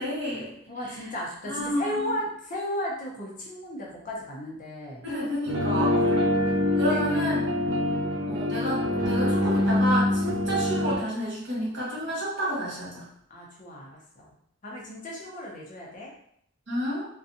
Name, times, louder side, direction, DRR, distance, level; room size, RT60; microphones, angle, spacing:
voice 1, 0.0-0.5 1.4-2.2 5.0-5.9 6.8-7.5 8.3-13.1 16.7-17.1, equal, 60° right, -6 dB, 1.2 m, -30 dB
voice 2, 0.7-5.0 5.6-6.4 6.8-7.2 7.6-8.1 13.3-14.3 14.6-16.1, left 1 dB, 40° left, -3 dB, 0.6 m, -35 dB
sound 1, 5.5-11.0, left 1 dB, 85° right, 0.6 m, -25 dB
2.6 x 2.2 x 2.6 m, 0.69 s
head